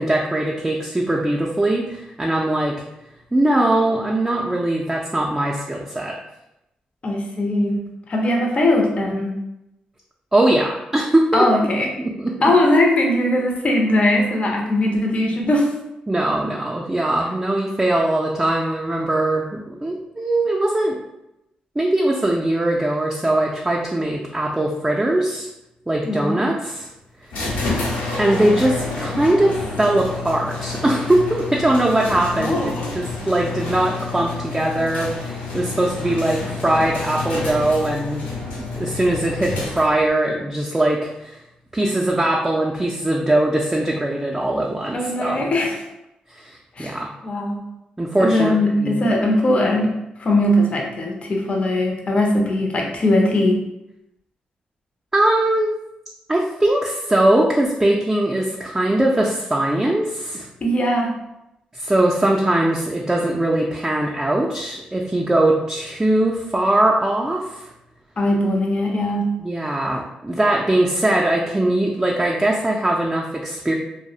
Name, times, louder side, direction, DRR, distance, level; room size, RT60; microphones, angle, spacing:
voice 1, 0.0-2.7 3.3-6.2 10.3-11.5 12.0-12.5 16.1-21.0 21.8-25.5 25.9-26.9 28.2-38.2 38.7-41.4 41.7-45.4 46.3-47.1 48.0-49.0 55.1-55.7 56.3-60.5 61.7-67.6 69.4-73.7, right 1 dB, 15° right, -2 dB, 0.3 m, -21 dB
voice 2, 7.0-7.8 8.1-9.3 11.3-11.9 12.4-15.7 26.0-26.5 32.4-32.9 44.9-45.8 46.8-46.9 47.2-47.7 48.2-49.9 50.2-53.6 60.6-61.1 68.2-69.4, left 1 dB, 45° left, 1 dB, 0.5 m, -20 dB
sound 1, 27.3-40.1, left 3 dB, 85° left, 0.7 m, -29 dB
2.3 x 2.0 x 2.7 m, 0.89 s
cardioid pair, 65°, 3 cm